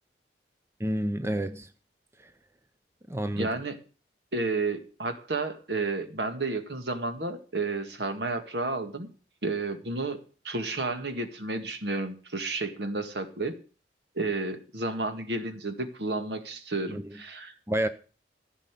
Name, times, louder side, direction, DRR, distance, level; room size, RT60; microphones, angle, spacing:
voice 1, 0.8-1.7 2.2-2.3 3.1-3.5 16.9-17.0 17.7-17.9, right 1 dB, 15° right, 0.7 m, -29 dB
voice 2, 3.4-3.8 4.3-9.1 9.4-10.2 10.4-13.6 14.2-17.5, right 3 dB, 65° right, 1.9 m, -31 dB
14.5 x 5.5 x 8.3 m
head